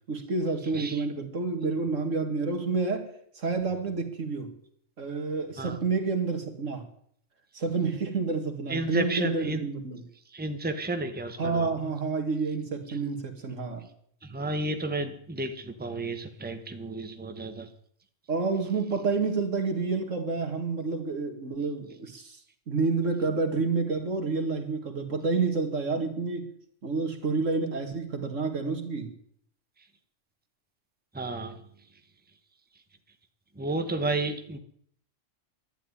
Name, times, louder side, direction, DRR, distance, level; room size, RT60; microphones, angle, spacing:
voice 1, 0.1-4.5 5.0-6.8 7.5-10.0 11.4-13.8 18.3-22.4 22.7-26.5 26.8-29.1, right 4 dB, 80° right, 6 dB, 2.4 m, -29 dB
voice 2, 8.7-9.7 10.3-11.7 12.9-13.0 14.2-17.7 31.1-31.6 33.6-34.6, right 2 dB, 10° right, 7 dB, 1.2 m, -32 dB
12.0 x 10.5 x 9.9 m, 0.65 s
omnidirectional pair, 1.3 m